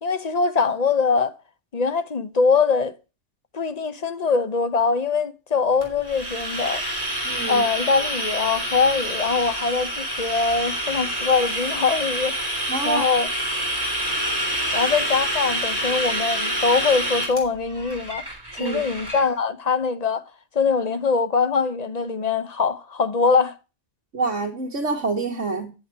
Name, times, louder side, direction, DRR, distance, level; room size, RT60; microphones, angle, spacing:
voice 1, 0.0-1.4 1.7-2.9 3.5-6.8 7.5-12.4 12.8-13.3 14.7-18.2 18.6-20.2 20.5-23.5, left 4 dB, 40° left, 0.8 m, -22 dB
sound 1, 5.8-19.2, right 1 dB, 20° right, 3.5 m, -27 dB
voice 2, 7.2-7.6 12.7-13.1 18.6-18.8 24.1-25.7, right 3 dB, 80° right, 1.9 m, -26 dB
9.4 x 7.7 x 4.5 m
omnidirectional pair, 1.2 m